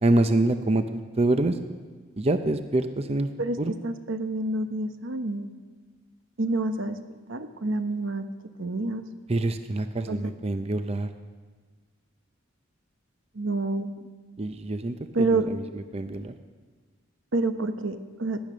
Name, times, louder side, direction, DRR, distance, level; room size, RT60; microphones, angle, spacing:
voice 1, 0.0-1.6 2.2-3.3 3.6-3.7 9.3-11.1 14.4-16.3, right 2 dB, 30° right, 9 dB, 0.6 m, -26 dB
voice 2, 3.8-5.5 6.4-7.0 7.3-8.3 8.6-9.0 10.1-10.2 13.3-13.9 15.1-15.5 17.3-18.4, right 2 dB, 80° right, 9 dB, 0.9 m, -28 dB
17.5 x 10.5 x 6.2 m, 1.5 s
head